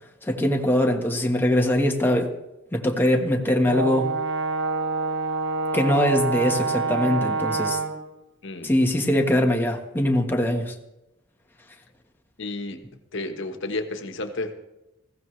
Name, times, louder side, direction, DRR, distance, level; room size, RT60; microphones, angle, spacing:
voice 1, 0.2-2.3 2.7-4.1 5.7-7.8 8.6-10.7, left 1 dB, 10° left, 2 dB, 1.4 m, -22 dB
Brass instrument, 3.7-8.1, right 4 dB, 60° right, 1.3 m, -26 dB
voice 2, 12.4-12.8 13.1-14.6, left 2 dB, 65° left, 7 dB, 1.4 m, -31 dB
20.0 x 15.5 x 3.3 m, 0.93 s
head